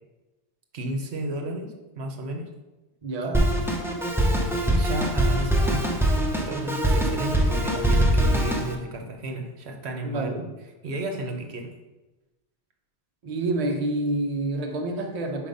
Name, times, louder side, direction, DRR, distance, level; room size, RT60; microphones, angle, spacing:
voice 1, 0.7-2.5 3.2-3.6 4.4-5.8 6.3-10.4 10.8-11.7, right 1 dB, 65° right, 3 dB, 1.1 m, -33 dB
voice 2, 3.0-3.5 10.0-10.5 13.2-15.5, right 2 dB, 40° right, 3 dB, 0.7 m, -28 dB
Drum kit, 3.3-8.7, right 1 dB, 5° right, 0.6 m, -23 dB
5.2 x 4.7 x 5.2 m, 1.1 s
omnidirectional pair, 1.2 m